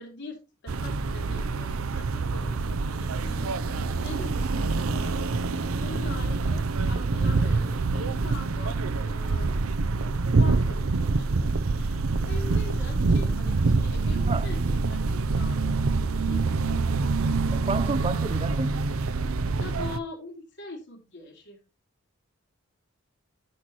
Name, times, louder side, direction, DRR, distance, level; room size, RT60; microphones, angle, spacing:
voice 1, 0.0-9.7 10.4-11.4 11.7-15.8 16.2-16.8 19.6-21.6, left 2 dB, 60° left, 3.4 m, -43 dB
sound 1, 0.7-20.0, right 3 dB, 85° right, 0.7 m, -26 dB
voice 2, 17.5-18.8, right 3 dB, 30° right, 0.5 m, -31 dB
10.5 x 7.7 x 3.1 m
head